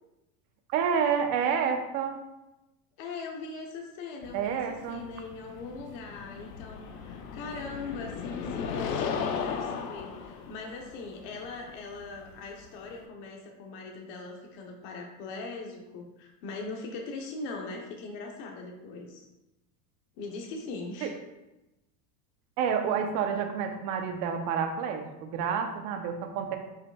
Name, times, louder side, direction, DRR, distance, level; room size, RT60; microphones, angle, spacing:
voice 1, 0.7-2.2 4.3-5.0 21.0-21.1 22.6-26.6, right 7 dB, 45° right, 5 dB, 0.8 m, -29 dB
voice 2, 3.0-4.6 4.9-19.3 20.2-21.1, left 3 dB, 50° left, 1 dB, 1.0 m, -40 dB
sound 1, 4.2-13.1, left 6 dB, 85° left, 0.9 m, -37 dB
8.5 x 4.9 x 2.3 m, 0.97 s
supercardioid pair, 160°, 46 cm